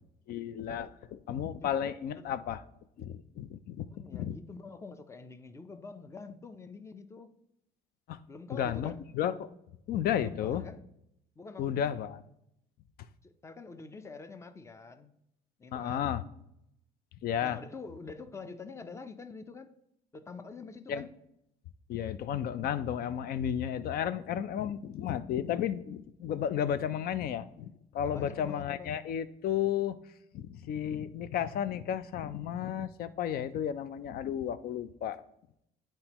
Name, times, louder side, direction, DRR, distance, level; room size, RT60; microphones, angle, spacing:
voice 1, 0.3-2.6 3.0-3.9 4.1-4.4 8.1-8.2 8.5-9.5 9.9-10.6 11.6-12.2 15.7-16.2 17.2-17.6 20.9-21.1 21.9-30.0 30.3-35.2, left 9 dB, 65° left, 0.5 m, -33 dB
voice 2, 1.6-2.3 3.8-7.3 8.3-9.0 10.2-10.8 11.4-11.9 13.2-15.2 15.6-16.1 17.4-19.8 20.1-21.1 28.0-29.0, left 4 dB, 15° left, 0.5 m, -46 dB
10.0 x 4.4 x 2.9 m
cardioid pair, 110°, 17 cm